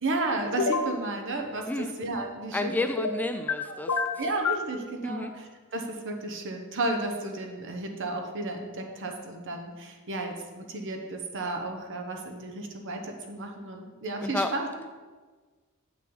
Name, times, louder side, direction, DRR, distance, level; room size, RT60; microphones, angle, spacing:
voice 1, 0.0-2.9 3.6-3.8 4.2-14.9, right 2 dB, 60° right, 3 dB, 1.0 m, -33 dB
sound 1, 0.6-0.9 3.0-3.6 3.9-4.7, left 4 dB, 85° left, 0.7 m, -27 dB
voice 2, 2.5-4.0 5.0-5.3 14.2-14.5, left 2 dB, 10° left, 7 dB, 0.3 m, -30 dB
8.3 x 7.0 x 4.0 m, 1.4 s
head